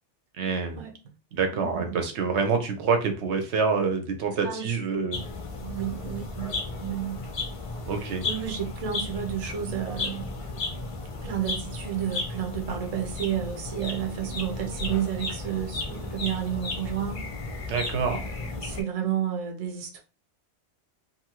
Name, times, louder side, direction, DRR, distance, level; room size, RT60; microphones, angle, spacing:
voice 1, 0.4-0.8 1.3-5.2 7.9-8.2 17.7-18.2, right 5 dB, 70° right, 0.9 m, -26 dB
voice 2, 1.5-2.0 4.4-4.8 5.1-7.2 7.9-10.3 11.2-17.2 18.1-20.0, right 10 dB, 40° right, 0.6 m, -32 dB
sound 1, 5.1-18.8, left 3 dB, 55° left, 0.3 m, -34 dB
2.6 x 2.6 x 2.8 m
omnidirectional pair, 1.2 m